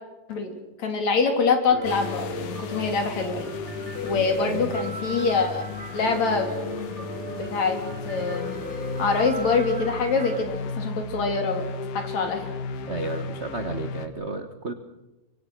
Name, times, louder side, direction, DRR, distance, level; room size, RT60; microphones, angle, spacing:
voice 1, 0.3-3.5 4.0-5.6 5.9-6.5 7.0-7.1 7.4-7.8 8.1-8.6 9.0-11.6 11.9-12.4, left 4 dB, 65° left, 5 dB, 4.3 m, -25 dB
Piano, 1.7-10.4, right 1 dB, 25° right, 2.5 m, -36 dB
sound 1, 1.8-14.1, left 4 dB, 85° left, 3.0 m, -35 dB
voice 2, 4.1-4.8 12.9-14.7, right 3 dB, 75° right, 8 dB, 0.6 m, -33 dB
24.5 x 24.5 x 6.2 m, 1.0 s
omnidirectional pair, 3.5 m